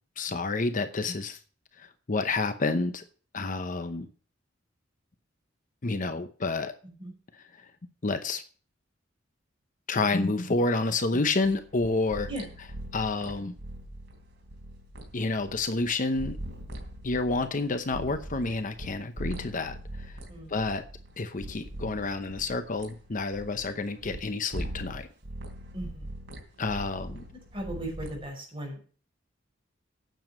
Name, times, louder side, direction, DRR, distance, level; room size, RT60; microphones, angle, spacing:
voice 1, 0.2-1.4 1.8-3.0 3.3-4.1 5.8-6.7 7.5-7.7 8.0-8.4 9.9-12.3 12.9-13.6 15.1-16.4 17.0-20.2 20.5-20.8 21.2-25.1 26.6-27.2, left 3 dB, 45° left, 9 dB, 0.8 m, -29 dB
sound 1, 11.4-18.9 19.2-24.2 24.5-25.0 25.2-28.2, right 1 dB, 65° right, 3.4 m, -41 dB
voice 2, 25.7-26.2 27.5-28.8, right 1 dB, 30° right, -1 dB, 5.7 m, -37 dB
9.2 x 7.1 x 7.4 m, 0.41 s
head